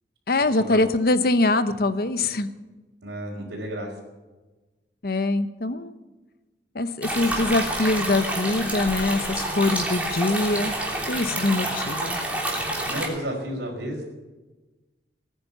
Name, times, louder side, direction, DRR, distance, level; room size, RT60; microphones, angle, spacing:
voice 1, 0.3-2.5 5.0-5.9 6.7-10.7 11.1-12.2, left 2 dB, 55° left, 11 dB, 0.9 m, -23 dB
voice 2, 3.0-3.9 12.8-14.1, right 1 dB, 85° right, -5 dB, 4.0 m, -32 dB
sound 1, 7.0-13.1, right 1 dB, 10° right, 3.3 m, -28 dB
20.0 x 9.6 x 7.0 m, 1.2 s
head